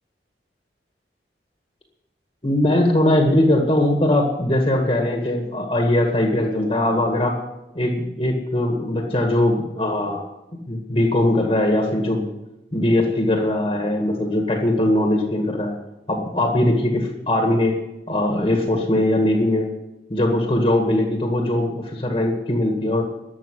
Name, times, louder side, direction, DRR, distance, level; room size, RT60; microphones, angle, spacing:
voice 1, 2.4-7.4 7.7-10.2 10.7-12.2 12.7-15.7 16.1-17.8 18.1-19.7 20.1-23.0, left 1 dB, 30° left, 2 dB, 1.8 m, -20 dB
12.5 x 7.8 x 9.8 m, 0.92 s
head